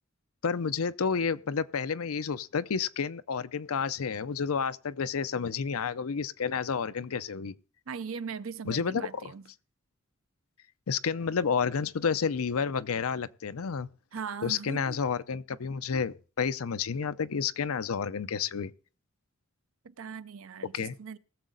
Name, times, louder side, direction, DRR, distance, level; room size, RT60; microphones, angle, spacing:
voice 1, 0.4-7.6 8.7-9.2 10.9-13.9 14.4-18.7 20.7-21.0, left 6 dB, 80° left, 0.6 m, -30 dB
voice 2, 7.9-9.5 14.1-15.0 19.8-21.2, right 6 dB, 70° right, 0.6 m, -39 dB
20.0 x 7.3 x 3.9 m
head